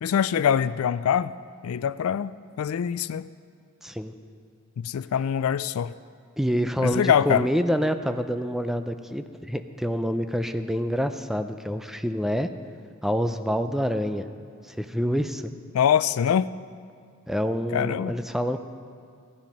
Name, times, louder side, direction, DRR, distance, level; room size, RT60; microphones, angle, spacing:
voice 1, 0.0-1.3 1.6-2.3 2.6-3.3 4.8-5.9 6.8-7.5 15.7-16.5 17.7-18.2, left 8 dB, 80° left, 16 dB, 0.3 m, -24 dB
voice 2, 3.8-4.1 6.4-12.5 13.0-14.3 14.6-15.4 17.3-18.6, equal, ahead, 8 dB, 0.4 m, -27 dB
15.0 x 10.0 x 5.3 m, 2.2 s
head